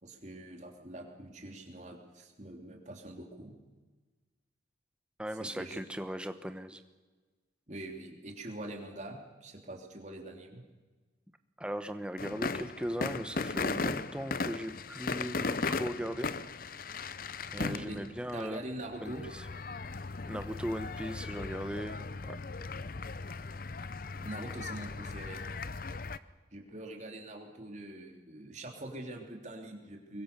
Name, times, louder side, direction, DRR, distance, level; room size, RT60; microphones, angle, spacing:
voice 1, 0.0-3.6 5.4-5.8 7.7-10.6 17.6-18.1 18.3-19.3 24.2-25.4 26.5-30.2, right 1 dB, 40° right, 2 dB, 3.3 m, -44 dB
voice 2, 5.2-6.8 11.6-16.3 17.5-18.7 19.0-19.4 20.3-22.4, equal, 5° right, 9 dB, 1.1 m, -38 dB
sound 1, 12.2-26.2, left 4 dB, 50° left, 0.7 m, -37 dB
24.0 x 22.0 x 6.9 m, 1.3 s
head